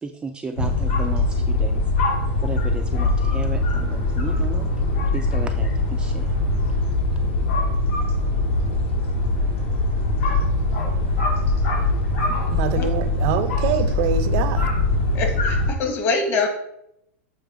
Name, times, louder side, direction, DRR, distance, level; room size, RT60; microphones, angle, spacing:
voice 1, 0.0-1.8 2.4-4.7 5.1-6.3, right 4 dB, 10° right, 0.4 m, -34 dB
sound 1, 0.6-15.7, left 2 dB, 75° left, 2.6 m, -22 dB
voice 2, 12.3-14.7, right 9 dB, 55° right, 0.6 m, -25 dB
voice 3, 15.1-16.5, left 4 dB, 35° left, 1.5 m, -24 dB
7.3 x 3.3 x 4.8 m
hypercardioid pair, 125°, 7 cm